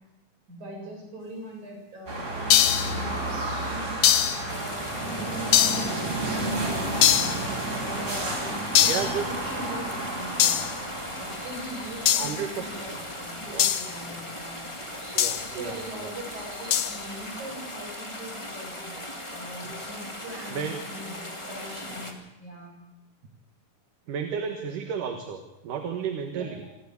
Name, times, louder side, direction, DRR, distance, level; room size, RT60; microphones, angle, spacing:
voice 1, 0.5-10.6 11.2-14.6 15.5-19.0 19.3-22.8 26.3-26.7, right 1 dB, 60° right, -2 dB, 8.6 m, -41 dB
sound 1, 2.1-17.3, right 2 dB, 20° right, 3.6 m, -33 dB
sound 2, 2.5-3.0 4.0-4.4 5.5-5.9 7.0-7.4 8.7-9.1 10.4-10.7 12.1-12.4 13.6-13.9 15.2-15.5 16.7-17.0, left 11 dB, 75° left, 1.3 m, -21 dB
sound 3, 4.5-22.1, left 1 dB, 10° left, 1.6 m, -39 dB
voice 2, 8.9-9.3 12.2-13.0 13.5-13.7 15.1-16.1 20.5-20.8 24.1-26.6, right 7 dB, 75° right, 4 dB, 3.1 m, -32 dB
28.0 x 12.0 x 8.4 m, 0.96 s
omnidirectional pair, 3.8 m